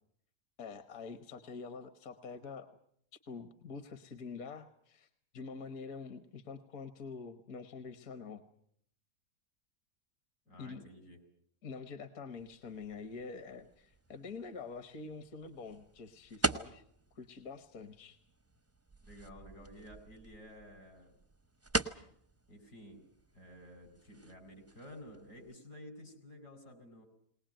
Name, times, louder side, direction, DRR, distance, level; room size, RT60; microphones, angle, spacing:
voice 1, 0.6-2.7 3.3-8.4 10.6-10.9 11.6-16.8 17.1-18.2, left 4 dB, 65° left, 10 dB, 1.5 m, -46 dB
voice 2, 10.5-11.2 19.0-21.2 22.5-23.0 23.3-27.1, equal, 85° left, 6 dB, 5.2 m, -52 dB
sound 1, 12.3-25.6, right 2 dB, 15° right, 0.5 m, -43 dB
20.5 x 20.0 x 9.0 m, 0.66 s
omnidirectional pair, 1.7 m